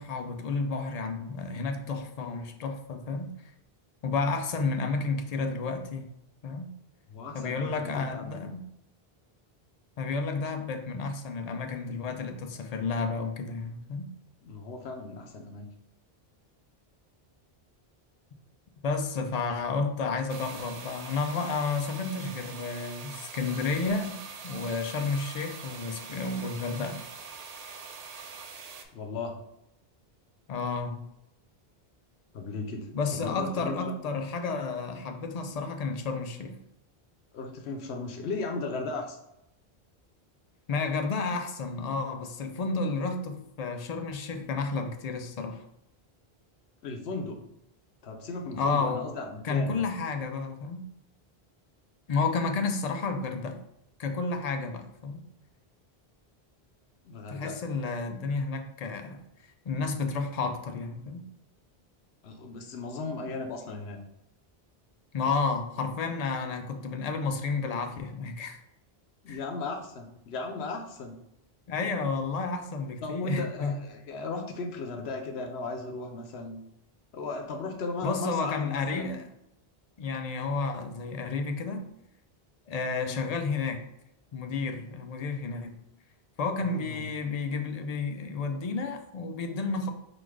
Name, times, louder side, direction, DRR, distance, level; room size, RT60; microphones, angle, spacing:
voice 1, 0.0-3.3 4.0-6.1 6.4-6.7 7.3-8.6 10.0-14.1 18.8-27.0 30.5-31.0 32.9-36.6 40.7-45.6 48.5-49.0 49.4-50.8 52.1-53.6 54.0-55.2 57.3-59.2 59.7-61.2 65.1-68.6 69.3-69.4 71.7-73.8 78.0-79.2 80.0-81.8 82.7-83.8 84.3-85.7 86.4-89.9, left 4 dB, 50° left, 6 dB, 0.5 m, -31 dB
voice 2, 7.1-8.5 14.4-15.7 28.9-29.4 32.3-33.9 37.3-39.2 46.8-47.4 48.0-49.8 57.0-57.6 62.2-64.0 69.2-71.2 73.0-76.6 77.1-79.2 83.0-83.2 86.6-87.1, left 3 dB, 85° left, 4 dB, 0.9 m, -36 dB
sound 1, 20.3-28.8, right 5 dB, 55° right, 0.5 m, -43 dB
3.9 x 2.5 x 4.7 m, 0.81 s
omnidirectional pair, 1.0 m